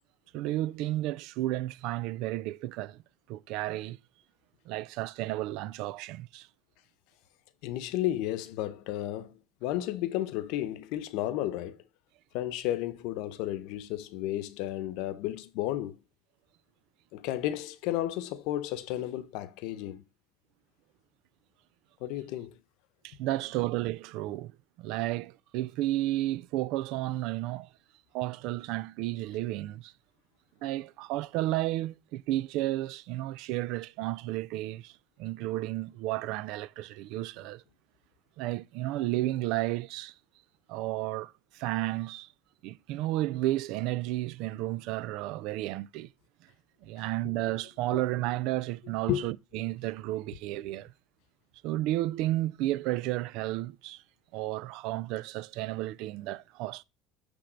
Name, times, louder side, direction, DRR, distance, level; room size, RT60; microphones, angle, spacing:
voice 1, 0.3-3.0 3.3-4.0 4.7-6.5 23.0-24.5 24.8-27.7 28.1-29.9 30.6-34.9 35.2-37.6 38.4-40.1 40.7-42.3 42.6-46.1 46.8-50.9 51.6-54.0 54.3-56.8, right 16 dB, 70° right, 0.4 m, -32 dB
voice 2, 7.6-11.8 12.3-16.0 17.1-20.0 22.0-22.6 47.0-47.1 47.9-48.0 49.1-49.3, left 13 dB, 75° left, 0.8 m, -33 dB
10.0 x 3.5 x 5.1 m
supercardioid pair, 110°, 0 cm